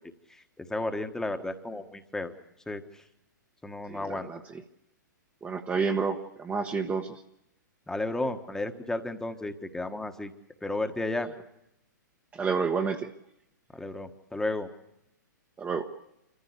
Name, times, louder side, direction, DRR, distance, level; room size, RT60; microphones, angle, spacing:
voice 1, 0.3-2.3 2.7-3.0 3.6-4.3 7.9-10.3 10.6-11.3 13.7-14.7, left 2 dB, 5° left, 7 dB, 1.4 m, -33 dB
voice 2, 3.9-4.6 5.4-7.2 12.3-13.1 15.6-15.9, right 5 dB, 15° right, 4 dB, 1.2 m, -30 dB
26.0 x 15.0 x 8.3 m, 0.84 s
hypercardioid pair, 120°, 10 cm